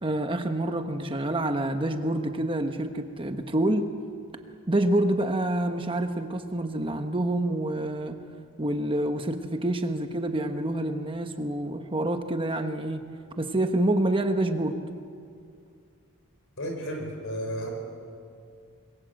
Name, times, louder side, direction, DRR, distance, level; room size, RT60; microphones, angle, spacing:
voice 1, 0.0-3.9 4.7-8.2 8.6-13.1 13.4-14.8, right 1 dB, 25° right, 6 dB, 1.1 m, -27 dB
voice 2, 16.6-17.7, equal, 60° left, 2 dB, 6.0 m, -33 dB
26.0 x 22.0 x 7.6 m, 2.3 s
head